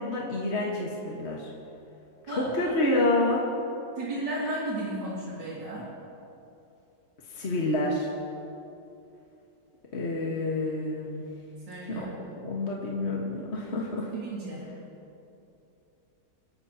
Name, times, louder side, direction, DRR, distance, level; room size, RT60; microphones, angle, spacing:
voice 1, 0.0-1.5 2.3-3.4 7.3-8.1 9.9-11.3 11.8-12.1 12.4-14.1, left 2 dB, 40° left, -3 dB, 1.8 m, -28 dB
voice 2, 4.0-5.9 11.7-12.3 14.1-14.6, right 1 dB, 85° right, -8 dB, 3.2 m, -34 dB
28.5 x 12.5 x 3.0 m, 2.7 s
omnidirectional pair, 1.9 m